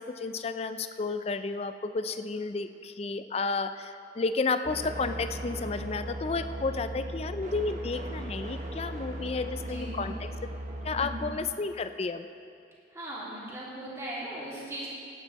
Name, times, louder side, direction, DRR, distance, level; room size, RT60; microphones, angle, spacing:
voice 1, 0.0-10.3 10.8-12.3, left 4 dB, 35° left, 10 dB, 0.4 m, -32 dB
sound 1, 4.6-11.3, right 1 dB, 45° right, 1.1 m, -37 dB
voice 2, 9.5-10.1 10.9-11.2 12.9-14.9, right 1 dB, 15° right, -7 dB, 3.0 m, -39 dB
19.0 x 9.0 x 4.1 m, 2.4 s
head